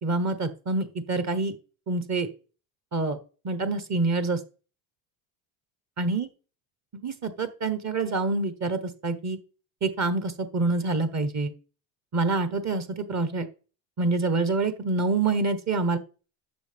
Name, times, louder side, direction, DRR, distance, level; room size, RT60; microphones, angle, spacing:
voice 1, 0.0-1.5 1.9-2.3 2.9-3.2 3.4-4.4 6.0-6.3 6.9-9.4 9.8-11.5 12.1-13.5 14.0-16.0, right 3 dB, 35° right, 10 dB, 1.2 m, -26 dB
11.5 x 6.8 x 3.5 m, 0.36 s
supercardioid pair, 90°, 47 cm